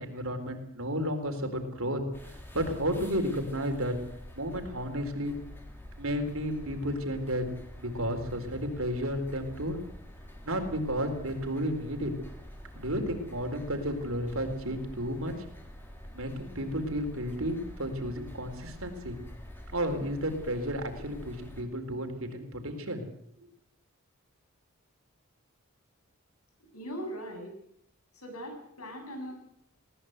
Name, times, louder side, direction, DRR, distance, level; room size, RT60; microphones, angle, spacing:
voice 1, 0.0-2.0 2.3-4.0 4.4-5.4 6.0-7.5 7.8-9.8 10.4-12.1 12.7-15.3 16.1-19.2 19.7-23.0, equal, 70° right, 5 dB, 4.1 m, -32 dB
sound 1, 2.1-21.6, equal, 10° left, 3.1 m, -47 dB
voice 2, 26.7-27.5 28.1-29.3, equal, 90° left, 4 dB, 8.0 m, -40 dB
20.5 x 18.5 x 8.0 m, 0.71 s
head